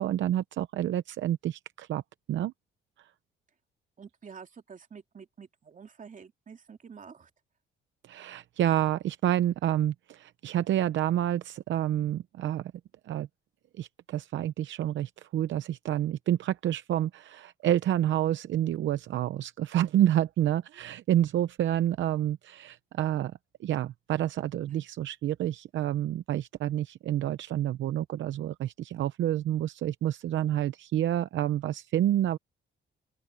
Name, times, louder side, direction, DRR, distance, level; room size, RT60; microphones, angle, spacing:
voice 1, 0.0-2.0 2.3-2.5 8.1-12.7 13.1-13.3 13.8-23.3 23.6-32.4, right 12 dB, 70° right, 0.7 m, -28 dB
voice 2, 4.0-7.3, right 6 dB, 40° right, 2.6 m, -48 dB
open air
cardioid pair, 90°, 20 cm